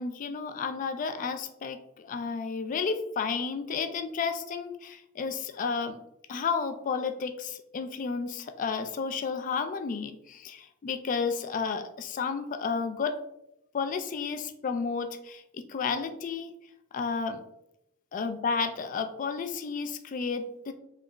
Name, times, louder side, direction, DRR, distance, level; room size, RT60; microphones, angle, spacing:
voice 1, 0.0-6.0 6.3-13.1 13.7-16.5 16.9-17.4 18.1-20.7, left 5 dB, 40° left, 8 dB, 0.3 m, -32 dB
3.6 x 2.0 x 3.3 m, 0.83 s
head